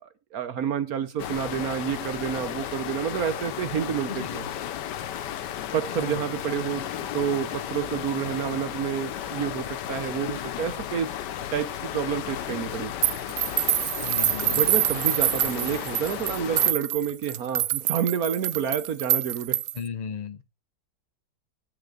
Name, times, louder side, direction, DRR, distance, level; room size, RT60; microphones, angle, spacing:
voice 1, 0.0-4.4 5.7-11.1 11.5-12.9 14.5-19.6, right 8 dB, 65° right, 1.2 m, -29 dB
sound 1, 1.2-16.7, left 10 dB, 85° left, 1.4 m, -34 dB
voice 2, 5.9-6.2 14.0-14.7 19.7-20.4, left 6 dB, 50° left, 0.4 m, -35 dB
sound 2, 13.0-19.9, right 12 dB, 90° right, 0.6 m, -26 dB
8.0 x 3.8 x 6.5 m
omnidirectional pair, 1.8 m